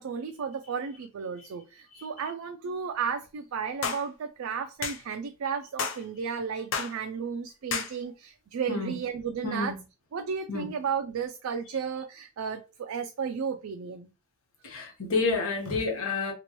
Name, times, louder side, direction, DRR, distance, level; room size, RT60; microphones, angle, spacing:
voice 1, 0.0-9.8 10.1-14.1, right 6 dB, 80° right, 0.4 m, -33 dB
sound 1, 3.8-4.0 4.8-5.0 5.8-6.0 6.7-6.9 7.7-7.9, left 6 dB, 65° left, 0.6 m, -30 dB
voice 2, 9.4-9.7 10.5-10.7 14.6-16.3, left 3 dB, 85° left, 1.2 m, -29 dB
3.0 x 3.0 x 3.0 m
head